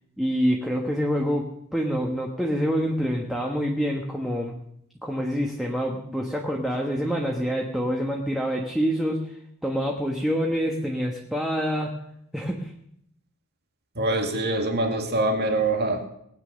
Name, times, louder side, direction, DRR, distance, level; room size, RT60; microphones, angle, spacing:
voice 1, 0.2-4.6 5.0-9.4 9.6-11.9 12.3-12.7, equal, ahead, 0 dB, 1.3 m, -26 dB
voice 2, 14.0-16.1, right 2 dB, 50° right, 4 dB, 2.2 m, -24 dB
19.5 x 9.2 x 6.4 m, 0.73 s
head